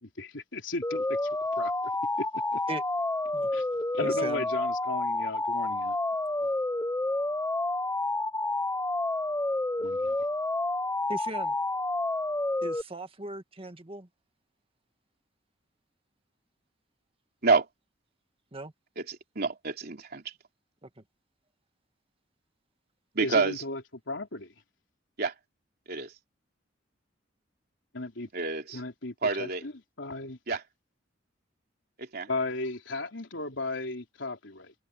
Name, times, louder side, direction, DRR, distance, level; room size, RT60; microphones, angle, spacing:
voice 1, 0.0-1.3 1.6-1.9 2.2-2.6 3.5-3.6 3.9-6.0 9.8-10.2 23.2-24.5 27.9-28.3 28.7-29.7 30.0-30.4 32.3-34.7, left 2 dB, 80° left, 3.4 m, -35 dB
sound 1, 0.8-12.8, left 2 dB, 10° left, 0.7 m, -29 dB
voice 2, 4.0-4.4 11.1-11.6 12.6-14.1 18.5-18.7 20.8-20.9, right 2 dB, 30° right, 1.8 m, -38 dB
voice 3, 19.0-20.2 23.1-23.6 25.2-25.3 25.9-26.1 28.3-28.8 29.2-29.6 30.5-30.6 32.0-32.3, right 4 dB, 55° right, 3.2 m, -28 dB
head